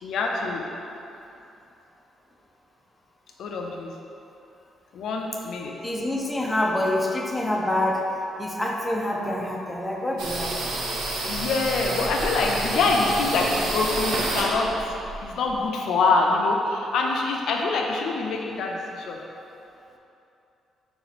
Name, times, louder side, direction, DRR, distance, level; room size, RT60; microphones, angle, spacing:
voice 1, 0.0-0.7 3.4-3.9 4.9-5.8 11.3-19.2, left 3 dB, 75° left, 0 dB, 0.4 m, -25 dB
voice 2, 5.6-8.0 8.4-10.6, left 1 dB, 10° left, -1 dB, 0.5 m, -26 dB
sound 1, 10.2-15.7, right 2 dB, 80° right, 0.6 m, -29 dB
3.7 x 2.9 x 4.0 m, 2.8 s
cardioid pair, 90°, 0 cm